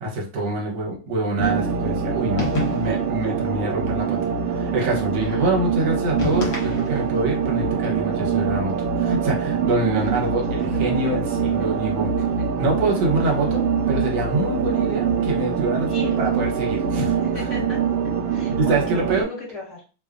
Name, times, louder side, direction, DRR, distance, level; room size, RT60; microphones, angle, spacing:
voice 1, 0.0-4.2 4.5-12.2 12.6-17.0 17.6-17.7 18.5-19.3, right 2 dB, 60° right, -1 dB, 1.5 m, -25 dB
sound 1, 1.4-19.2, right 6 dB, 80° right, 1.4 m, -24 dB
sound 2, 2.4-3.1 6.2-7.2, left 3 dB, 60° left, 1.5 m, -28 dB
voice 2, 5.2-5.5 9.9-10.2 11.6-11.7 12.2-12.7 15.9-16.5 16.9-17.8 18.3-19.8, left 3 dB, 45° left, -4 dB, 1.2 m, -36 dB
3.3 x 2.1 x 2.4 m, 0.35 s
omnidirectional pair, 2.2 m